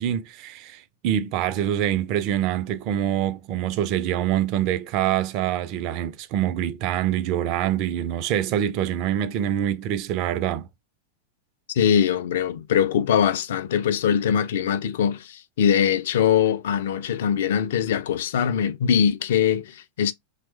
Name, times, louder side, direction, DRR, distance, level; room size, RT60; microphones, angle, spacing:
voice 1, 0.0-10.7, right 10 dB, 40° right, 0.3 m, -25 dB
voice 2, 11.8-20.1, left 8 dB, 55° left, 0.4 m, -22 dB
3.0 x 2.1 x 3.1 m
figure-of-eight pair, 90°, 0 cm